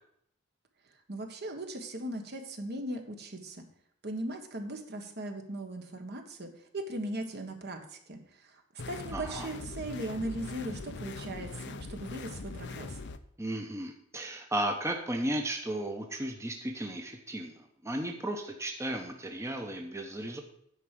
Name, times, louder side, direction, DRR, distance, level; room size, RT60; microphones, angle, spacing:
voice 1, 1.1-3.6 4.0-13.0, right 1 dB, 55° right, 4 dB, 1.4 m, -38 dB
sound 1, 8.8-13.2, left 3 dB, 60° left, 0.6 m, -41 dB
voice 2, 9.1-9.5 13.4-20.4, right 1 dB, 15° right, 3 dB, 0.9 m, -35 dB
9.7 x 4.7 x 7.5 m, 0.71 s
head